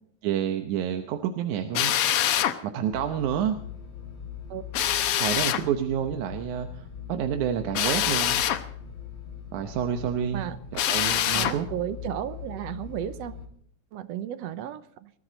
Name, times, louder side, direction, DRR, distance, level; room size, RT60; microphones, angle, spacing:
voice 1, 0.2-2.0 2.6-3.6 5.2-8.4 9.5-10.5 10.7-11.7, right 9 dB, 85° right, 7 dB, 2.4 m, -29 dB
Drill, 1.7-2.6 4.7-5.6 7.7-8.6 10.7-11.6, left 11 dB, 65° left, 1.6 m, -24 dB
sound 1, 2.9-13.5, left 6 dB, 40° left, 2.8 m, -41 dB
voice 2, 11.3-13.3 13.9-15.1, right 11 dB, 70° right, 13 dB, 1.8 m, -34 dB
20.5 x 14.5 x 4.0 m, 0.64 s
omnidirectional pair, 3.3 m